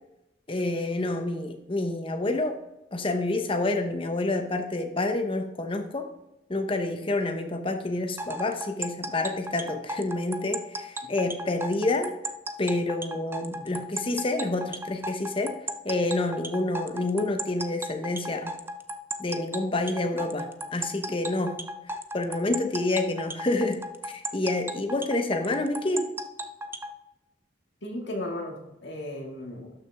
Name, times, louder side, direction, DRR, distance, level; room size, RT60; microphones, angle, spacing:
voice 1, 0.5-2.6 2.9-6.1 6.5-12.2 12.6-15.6 15.8-18.6 19.2-21.6 22.1-26.1, left 2 dB, 30° left, 5 dB, 1.0 m, -28 dB
sound 1, 8.2-26.9, right 1 dB, 10° right, 0.5 m, -35 dB
voice 2, 13.2-13.7 27.8-29.7, left 1 dB, 65° left, 1 dB, 2.1 m, -36 dB
12.5 x 6.3 x 3.5 m, 0.89 s
head